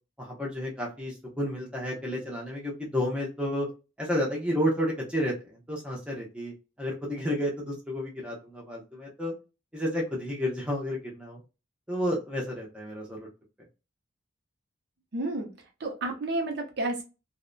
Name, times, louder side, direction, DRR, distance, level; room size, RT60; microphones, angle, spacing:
voice 1, 0.2-3.7 4.0-5.3 5.7-6.5 6.8-9.3 9.7-11.4 11.9-13.3, equal, 5° right, -3 dB, 0.6 m, -31 dB
voice 2, 15.1-15.5 15.8-17.0, right 2 dB, 55° right, 2 dB, 0.6 m, -30 dB
2.6 x 2.1 x 2.5 m, 0.30 s
head